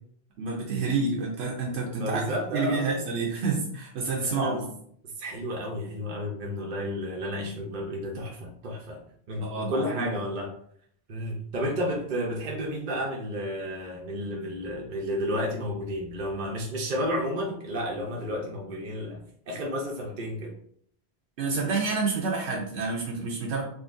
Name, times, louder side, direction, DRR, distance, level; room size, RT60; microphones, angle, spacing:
voice 1, 0.4-4.6 9.4-10.1 21.4-23.6, right 4 dB, 85° right, -2 dB, 0.9 m, -29 dB
voice 2, 1.9-3.0 4.2-4.6 5.2-9.0 9.3-10.5 11.1-20.5, equal, 55° right, -1 dB, 0.7 m, -32 dB
3.7 x 2.6 x 2.5 m, 0.64 s
omnidirectional pair, 1.1 m